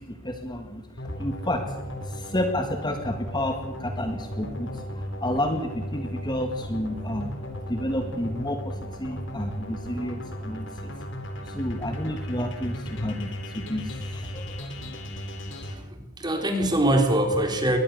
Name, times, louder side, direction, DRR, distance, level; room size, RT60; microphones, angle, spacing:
voice 1, 0.0-1.8 2.0-7.4 7.7-10.9 11.4-14.7, left 1 dB, 20° left, 5 dB, 1.9 m, -31 dB
sound 1, 1.0-15.7, equal, 60° left, 3.8 m, -36 dB
voice 2, 15.7-17.8, right 1 dB, 20° right, 4 dB, 3.8 m, -23 dB
23.0 x 20.0 x 6.8 m, 0.93 s
head